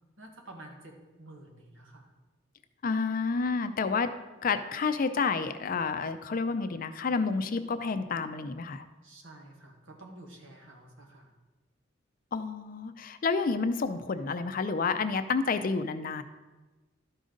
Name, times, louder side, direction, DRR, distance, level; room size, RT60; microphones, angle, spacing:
voice 1, 0.2-2.1 9.0-11.3, right 1 dB, 80° right, 2 dB, 1.5 m, -50 dB
voice 2, 2.8-4.1 4.4-8.8 12.3-16.2, left 4 dB, 45° left, 10 dB, 0.4 m, -29 dB
12.0 x 5.1 x 3.9 m, 1.2 s
head